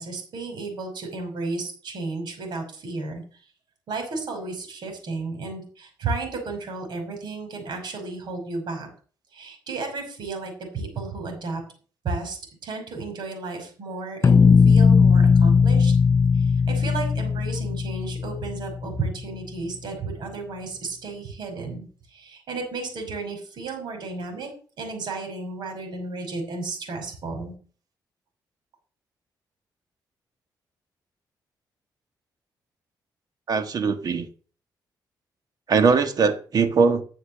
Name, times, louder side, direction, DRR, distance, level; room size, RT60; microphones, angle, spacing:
voice 1, 0.0-3.2 3.9-8.9 9.3-11.6 12.0-12.4 12.6-15.9 16.7-21.8 22.1-24.5 24.8-27.5, right 3 dB, 70° right, 4 dB, 5.7 m, -33 dB
sound 1, 14.2-19.1, left 5 dB, 35° left, 0.5 m, -18 dB
voice 2, 33.5-34.3 35.7-37.0, right 5 dB, 55° right, 9 dB, 1.6 m, -21 dB
12.0 x 7.1 x 6.6 m, 0.41 s
cardioid pair, 95°, 8 cm